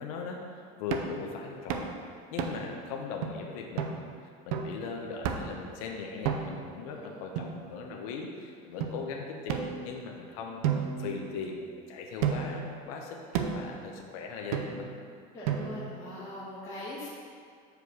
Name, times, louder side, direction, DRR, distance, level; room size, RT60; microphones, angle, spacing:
voice 1, 0.0-1.9 2.3-11.6 11.9-14.9, left 5 dB, 75° left, 1 dB, 0.8 m, -39 dB
sound 1, 0.9-1.2 1.7-1.9 2.4-2.8 3.2-3.3 3.8-4.0 4.5-4.8 5.2-5.6 6.2-6.7 7.4-8.1 8.8-8.9 9.5-10.2 10.6-11.7 12.2-12.7 13.3-13.7 14.5-15.0 15.5-16.0, right 8 dB, 85° right, 0.7 m, -32 dB
voice 2, 15.3-17.1, left 1 dB, 15° left, -10 dB, 1.4 m, -41 dB
5.2 x 4.9 x 6.3 m, 2.2 s
cardioid pair, 160°, 19 cm